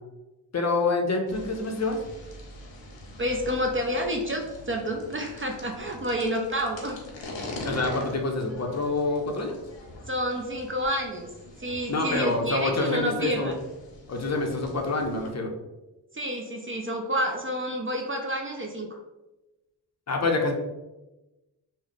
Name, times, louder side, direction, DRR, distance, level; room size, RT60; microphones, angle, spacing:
voice 1, 0.5-2.0 7.6-9.6 11.9-13.5 14.1-15.5 20.1-20.5, left 3 dB, 40° left, 2 dB, 0.5 m, -27 dB
sound 1, 1.3-15.3, left 1 dB, 85° left, 0.8 m, -43 dB
voice 2, 3.2-7.0 10.1-11.3 11.6-13.5 16.1-19.0, equal, 30° right, 2 dB, 0.4 m, -29 dB
3.1 x 2.0 x 3.8 m, 1.0 s
wide cardioid pair, 95°, 43 cm